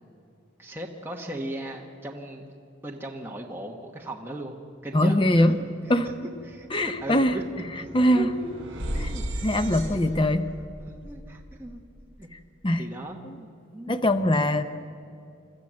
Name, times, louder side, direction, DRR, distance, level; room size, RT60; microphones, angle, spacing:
voice 1, 0.6-2.5 2.8-4.6 4.8-6.0 6.4-7.4 7.8-8.5 8.9-9.4 10.9-11.8 12.2-12.3 12.8-14.0, right 1 dB, 10° right, 0 dB, 1.3 m, -37 dB
voice 2, 4.9-5.6 5.9-6.1 6.7-7.4 7.9-8.3 9.0-9.1 9.4-10.5 12.3-12.9 13.2-13.4 13.9-14.6, left 1 dB, 25° left, 9 dB, 0.7 m, -22 dB
sound 1, 5.8-5.9 6.1-12.3, right 1 dB, 60° right, 5.5 m, -37 dB
27.0 x 13.5 x 7.6 m, 2.6 s
head